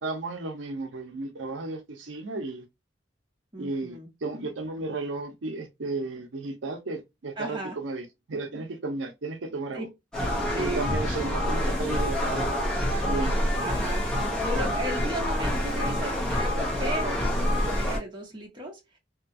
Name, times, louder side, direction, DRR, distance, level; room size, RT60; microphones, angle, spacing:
voice 1, 0.0-2.6 3.6-9.9 10.5-12.5 13.0-13.4, right 3 dB, 85° right, 0.6 m, -34 dB
voice 2, 3.5-4.1 7.4-7.8 9.7-9.8 10.5-10.8 13.6-14.1 14.4-19.0, right 1 dB, 25° right, 1.0 m, -35 dB
sound 1, 10.1-18.0, left 1 dB, 5° left, 0.8 m, -27 dB
2.8 x 2.3 x 2.5 m
head